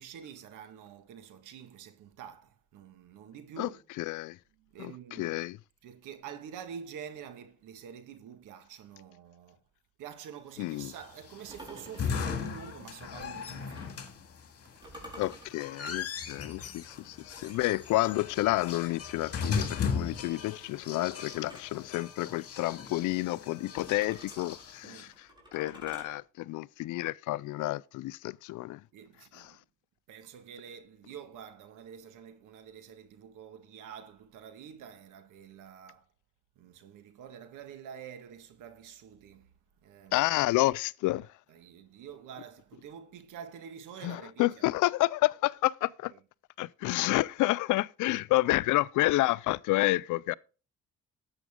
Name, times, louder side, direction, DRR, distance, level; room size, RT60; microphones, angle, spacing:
voice 1, 0.0-3.8 4.6-5.4 5.8-9.6 10.0-14.2 14.8-15.0 24.8-25.1 28.9-29.6 30.1-36.0 36.6-39.5 39.8-40.3 41.5-44.7, right 8 dB, 90° right, 1.8 m, -47 dB
voice 2, 4.0-4.4 4.8-5.6 10.6-10.9 15.2-25.3 25.5-28.8 29.3-29.5 40.1-41.3 44.0-46.1 46.6-50.3, left 18 dB, 85° left, 0.5 m, -30 dB
sound 1, 10.7-25.0, left 6 dB, 50° left, 2.0 m, -38 dB
sound 2, 11.5-14.1 14.8-17.8 19.3-21.8 23.7-26.2, right 1 dB, 15° right, 4.6 m, -51 dB
11.0 x 8.1 x 3.7 m
cardioid pair, 90°, 30 cm